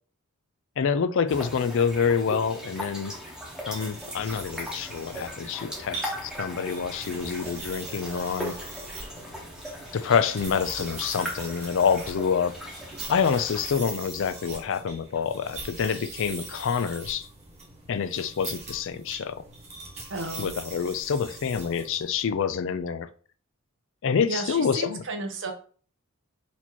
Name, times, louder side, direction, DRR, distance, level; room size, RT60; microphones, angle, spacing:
voice 1, 0.8-3.2 3.7-8.5 9.9-12.6 13.1-17.3 17.9-19.4 20.4-23.1 24.0-25.0, left 6 dB, 60° left, 12 dB, 0.4 m, -27 dB
sound 1, 1.3-13.7, equal, 5° right, 1.0 m, -39 dB
sound 2, 3.4-22.3, right 3 dB, 30° right, 1.5 m, -42 dB
voice 2, 20.1-20.5 24.3-25.5, right 2 dB, 60° right, 4 dB, 0.9 m, -33 dB
4.3 x 2.8 x 4.4 m, 0.42 s
head